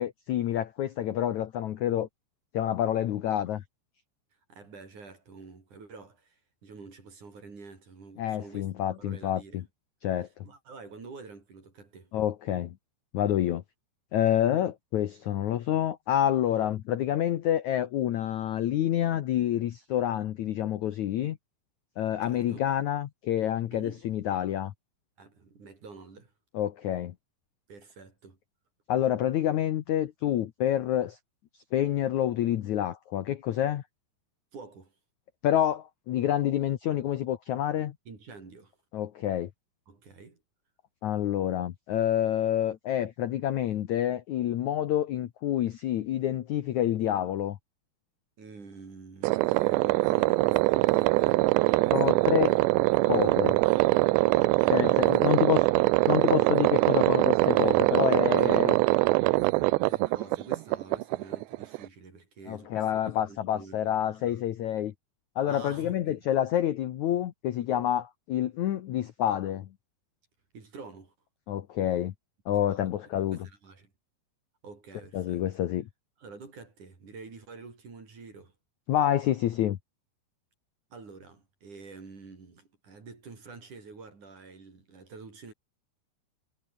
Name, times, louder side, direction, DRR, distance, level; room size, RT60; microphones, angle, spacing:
voice 1, 0.0-2.1 2.5-3.6 8.2-9.6 10.0-10.3 12.1-12.7 13.1-13.6 14.1-21.4 22.0-24.7 26.5-27.1 28.9-31.2 31.7-33.8 35.4-37.9 38.9-39.5 41.0-47.6 51.9-52.6 53.0-53.6 54.7-55.7 56.1-58.8 62.5-64.9 65.3-69.7 71.5-72.1 72.5-73.4 75.1-75.9 78.9-79.8, left 11 dB, 80° left, 1.7 m, -28 dB
voice 2, 4.5-8.7 9.0-9.6 10.4-12.1 22.2-22.7 23.7-24.0 25.2-26.3 27.7-28.4 34.5-34.9 38.1-38.7 39.9-40.4 48.4-51.5 54.6-55.2 59.9-64.4 65.5-66.1 70.5-71.1 72.7-72.8 73.3-73.9 74.6-75.4 76.2-78.5 80.9-85.5, right 4 dB, 45° right, 6.7 m, -48 dB
sound 1, 49.2-61.9, right 21 dB, 85° right, 2.8 m, -23 dB
omnidirectional pair, 5.0 m